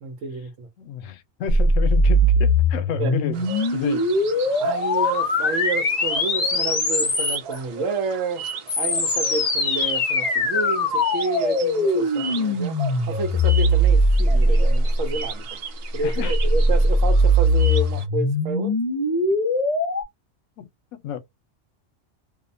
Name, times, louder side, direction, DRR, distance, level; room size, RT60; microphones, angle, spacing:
voice 1, 0.0-0.7 3.0-3.1 4.6-8.4 8.8-12.8 13.1-15.6 15.9-18.7, right 4 dB, 80° right, 1.1 m, -30 dB
voice 2, 0.8-3.5 3.7-4.1 16.0-16.3 20.6-21.2, left 10 dB, 85° left, 1.0 m, -31 dB
sound 1, 1.5-7.6 8.4-15.1 16.1-20.0, left 1 dB, 40° left, 0.8 m, -20 dB
sound 2, 3.3-18.1, right 5 dB, 60° right, 0.7 m, -37 dB
2.7 x 2.1 x 2.5 m
omnidirectional pair, 1.3 m